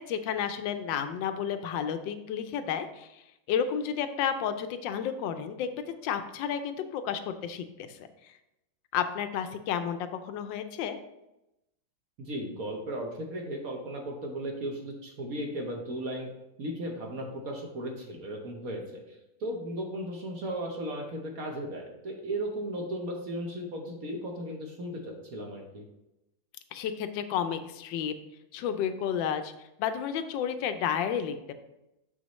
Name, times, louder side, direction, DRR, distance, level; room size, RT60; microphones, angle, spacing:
voice 1, 0.0-3.2 3.5-8.0 8.2-8.3 8.9-11.0 26.7-28.1 28.5-29.5 29.8-31.5, left 8 dB, 75° left, 9 dB, 1.2 m, -31 dB
voice 2, 12.2-16.3 16.6-25.8, right 1 dB, 55° right, 1 dB, 1.2 m, -36 dB
6.6 x 6.2 x 3.0 m, 0.91 s
omnidirectional pair, 2.1 m